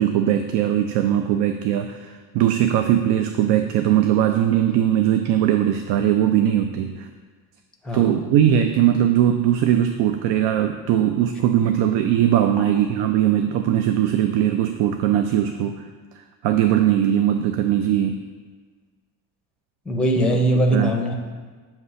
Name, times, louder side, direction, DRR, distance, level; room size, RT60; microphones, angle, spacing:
voice 1, 0.0-7.1 7.9-15.8 16.4-18.2 20.7-20.9, right 10 dB, 85° right, 7 dB, 0.5 m, -20 dB
voice 2, 7.8-8.2 12.6-12.7 19.9-21.1, right 1 dB, ahead, 1 dB, 0.5 m, -21 dB
7.9 x 2.9 x 5.5 m, 1.4 s
cardioid pair, 155°, 40 cm